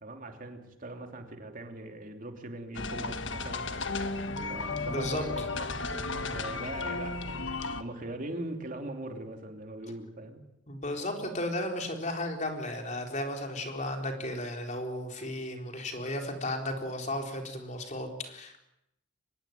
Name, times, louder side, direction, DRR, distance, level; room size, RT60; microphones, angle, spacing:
voice 1, 0.0-3.7 4.5-7.5 7.8-10.4, right 1 dB, 45° right, 4 dB, 3.1 m, -41 dB
sound 1, 2.7-7.8, left 3 dB, 70° left, 1.6 m, -34 dB
voice 2, 4.9-5.2 7.3-7.4 10.7-18.7, left 1 dB, 40° left, 3 dB, 4.1 m, -34 dB
24.5 x 20.5 x 9.4 m, 0.83 s
head